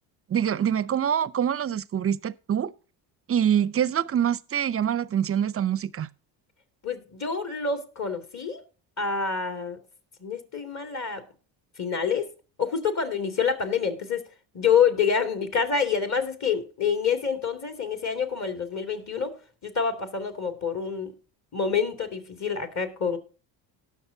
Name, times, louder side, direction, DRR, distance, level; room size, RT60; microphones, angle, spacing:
voice 1, 0.3-2.7 3.3-6.1, right 9 dB, 30° right, 0.6 m, -25 dB
voice 2, 6.8-8.6 9.0-9.8 10.2-11.2 11.8-12.3 12.6-14.2 14.5-19.4 19.6-21.1 21.5-23.2, left 6 dB, 35° left, 2.4 m, -27 dB
18.5 x 6.6 x 2.7 m
supercardioid pair, 90°, 46 cm